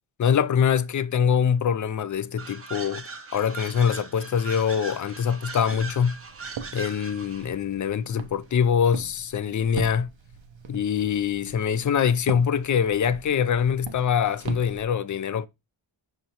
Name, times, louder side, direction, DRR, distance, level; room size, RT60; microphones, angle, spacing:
voice 1, 0.2-3.0 3.3-6.2 6.7-10.1 10.7-15.5, left 7 dB, 40° left, 0.4 m, -24 dB
sound 1, 2.4-7.5, right 4 dB, 30° right, 0.6 m, -39 dB
Walk footsteps, 5.5-14.8, right 6 dB, 65° right, 0.7 m, -41 dB
5.1 x 2.9 x 2.8 m
cardioid pair, 45°, 50 cm